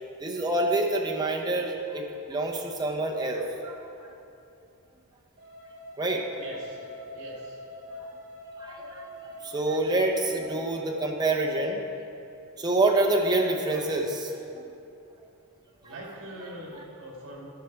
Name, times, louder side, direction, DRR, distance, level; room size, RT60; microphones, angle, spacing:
voice 1, 0.2-4.1 6.0-6.2 8.6-11.8 12.6-14.6 15.8-15.9 16.7-16.8, right 2 dB, 20° right, 0 dB, 0.9 m, -27 dB
sound 1, 5.4-11.4, left 1 dB, 40° right, 2.0 m, -44 dB
voice 2, 6.4-6.8 7.1-7.6 13.8-13.9 15.8-17.4, right 1 dB, 60° right, -2 dB, 2.1 m, -42 dB
11.0 x 6.7 x 4.5 m, 2.7 s
head